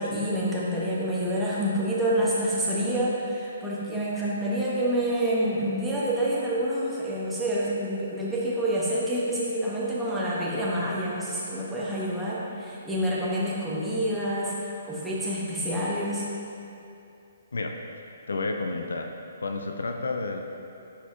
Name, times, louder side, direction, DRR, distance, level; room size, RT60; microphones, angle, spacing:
voice 1, 0.0-16.2, right 1 dB, 5° right, -8 dB, 1.1 m, -27 dB
voice 2, 18.3-19.1 19.4-20.4, left 3 dB, 65° left, 4 dB, 0.4 m, -30 dB
9.9 x 4.5 x 2.4 m, 2.7 s
figure-of-eight pair, 130°, 0 cm